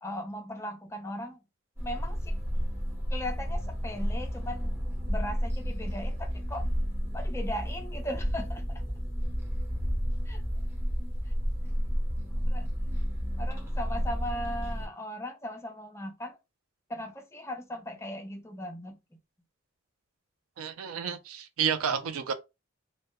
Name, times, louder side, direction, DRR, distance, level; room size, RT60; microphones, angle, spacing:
voice 1, 0.0-1.4 1.8-2.4 3.1-4.8 5.1-6.7 7.1-8.8 10.3-10.4 12.5-12.7 13.4-16.4 16.9-19.0, left 1 dB, 10° left, 0.3 m, -38 dB
sound 1, 1.8-14.9, equal, 10° right, 0.7 m, -31 dB
voice 2, 20.6-22.3, right 7 dB, 80° right, 0.4 m, -30 dB
2.1 x 2.1 x 2.8 m
head